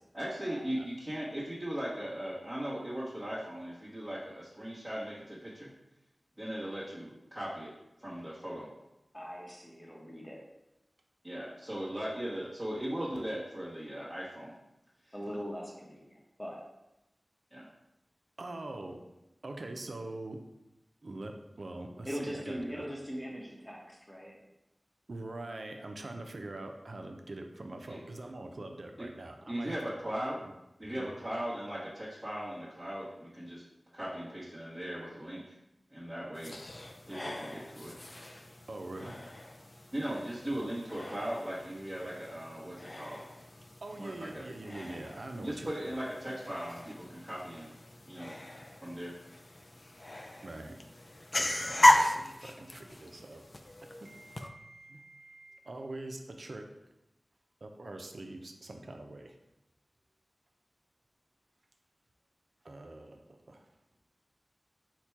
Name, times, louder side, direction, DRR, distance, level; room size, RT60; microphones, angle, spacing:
voice 1, 0.1-5.7 6.4-7.7 8.0-8.7 11.2-14.5 15.0-15.1 17.5-17.6 27.9-28.0 29.0-29.1 29.5-30.4 30.8-33.6 33.9-35.6 35.9-36.6 37.1-38.0 39.9-43.2 44.0-44.4 45.3-47.8 48.1-48.4 48.8-49.2, equal, 15° right, -11 dB, 1.1 m, -38 dB
voice 2, 9.1-10.4 15.1-16.6 22.1-24.3, equal, 15° left, -2 dB, 0.9 m, -41 dB
voice 3, 18.4-19.0 19.4-20.4 21.0-22.9 25.1-30.1 30.9-31.1 38.7-39.2 43.8-45.7 50.4-50.8 51.4-53.4 53.8-56.7 57.6-59.4 62.6-63.7, right 2 dB, 70° right, 4 dB, 0.5 m, -44 dB
sound 1, 36.3-54.5, left 1 dB, 40° left, 0.3 m, -34 dB
4.2 x 2.2 x 4.5 m, 0.93 s
wide cardioid pair, 65°, 0 cm